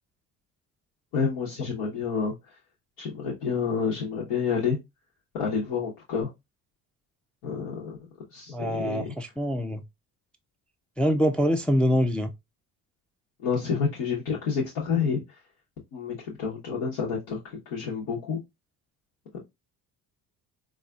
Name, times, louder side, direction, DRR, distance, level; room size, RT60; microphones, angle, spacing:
voice 1, 1.1-2.3 3.0-4.8 5.3-6.3 7.4-8.0 8.3-9.1 13.4-15.2 15.9-18.4, left 6 dB, 75° left, 1.1 m, -29 dB
voice 2, 8.5-9.8 11.0-12.3, equal, 5° left, 0.3 m, -24 dB
4.0 x 2.4 x 2.4 m
hypercardioid pair, 60°, 45 cm